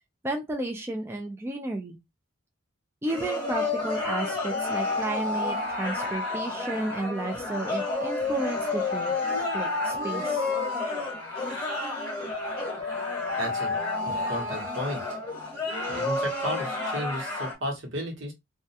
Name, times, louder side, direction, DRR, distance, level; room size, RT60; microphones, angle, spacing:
voice 1, 0.2-2.0 3.0-9.1 9.5-10.5, right 1 dB, 10° right, 0.3 m, -33 dB
sound 1, 3.1-17.5, left 2 dB, 20° left, 0.9 m, -32 dB
Alarm, 3.5-7.2 7.9-11.6 12.3-15.5, left 3 dB, 45° left, 0.6 m, -33 dB
voice 2, 13.4-13.8 14.1-15.0 15.9-18.3, equal, 70° right, 1.0 m, -33 dB
2.3 x 2.2 x 2.6 m
head